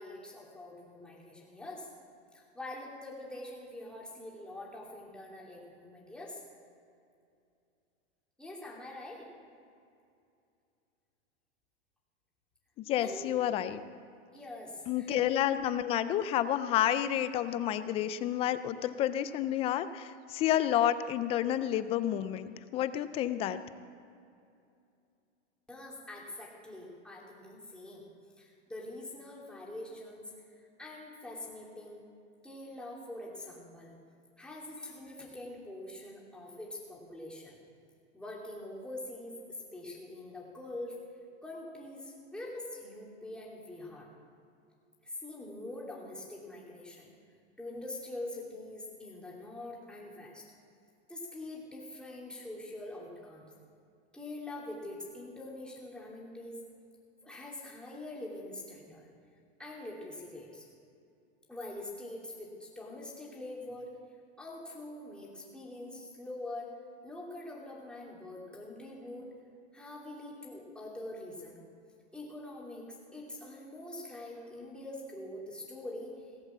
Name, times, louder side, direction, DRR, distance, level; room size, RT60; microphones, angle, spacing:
voice 1, 0.0-1.9 2.3-6.4 8.4-9.3 13.0-13.4 14.3-15.2 25.7-28.1 28.4-30.2 30.8-32.0 32.4-33.9 34.4-37.6 38.1-41.0 41.4-44.1 45.0-47.1 47.6-50.5 51.1-53.5 54.1-56.6 57.2-59.1 59.6-60.6 61.5-63.9 64.4-66.7 67.0-69.3 69.7-71.6 72.1-72.9 73.1-76.3, left 1 dB, 5° left, -4 dB, 3.0 m, -44 dB
voice 2, 12.8-13.8 14.9-23.6, left 11 dB, 20° left, 13 dB, 0.3 m, -30 dB
18.0 x 7.9 x 7.3 m, 2.5 s
hypercardioid pair, 135°, 33 cm